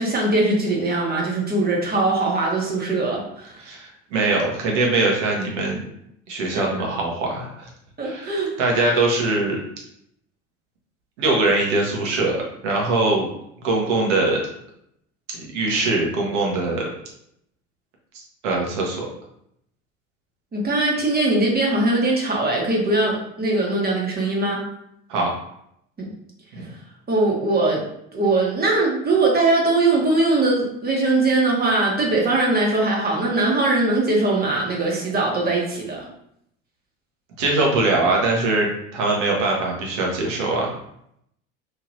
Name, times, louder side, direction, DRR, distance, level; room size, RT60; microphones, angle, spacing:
voice 1, 0.0-3.5 6.5-6.6 8.0-8.5 20.5-24.6 26.0-26.1 27.1-27.8 28.1-36.1, right 2 dB, 25° right, -2 dB, 1.0 m, -21 dB
voice 2, 3.6-5.8 6.3-7.7 8.0-9.6 11.2-13.3 13.6-14.4 15.3-16.9 18.1-19.1 25.1-25.3 26.5-26.7 37.4-40.7, right 2 dB, 70° right, -1 dB, 1.0 m, -22 dB
3.1 x 2.8 x 2.6 m, 0.74 s
hypercardioid pair, 70°, 37 cm